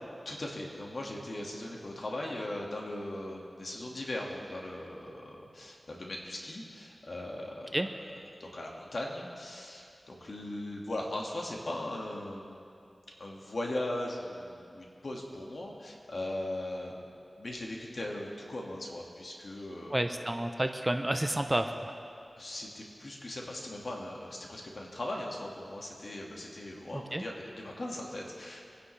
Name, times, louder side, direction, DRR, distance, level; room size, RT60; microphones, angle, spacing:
voice 1, 0.3-7.8 8.4-12.6 13.2-20.1 22.4-28.6, left 1 dB, 65° left, -1 dB, 2.0 m, -39 dB
voice 2, 19.9-21.9 26.9-27.2, right 1 dB, 20° right, 6 dB, 0.8 m, -30 dB
24.0 x 10.0 x 3.4 m, 2.5 s
wide cardioid pair, 55°, 0 cm